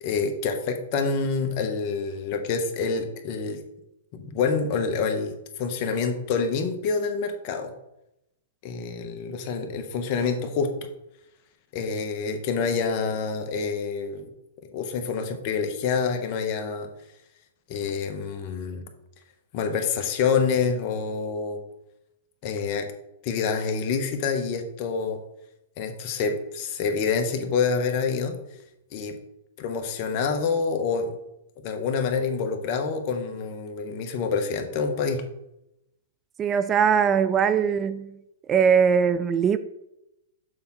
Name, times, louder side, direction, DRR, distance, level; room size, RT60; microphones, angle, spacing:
voice 1, 0.0-3.6 4.1-7.7 8.6-10.9 11.7-14.3 14.7-16.9 17.7-18.8 19.5-21.6 22.4-22.9 23.2-25.2 25.8-28.4 28.9-29.2 29.6-31.2 31.6-35.2, left 5 dB, 45° left, 6 dB, 1.1 m, -27 dB
voice 2, 36.4-38.2 38.5-39.6, right 7 dB, 20° right, 13 dB, 0.3 m, -21 dB
6.9 x 3.5 x 5.6 m, 0.86 s
hypercardioid pair, 130°, 0 cm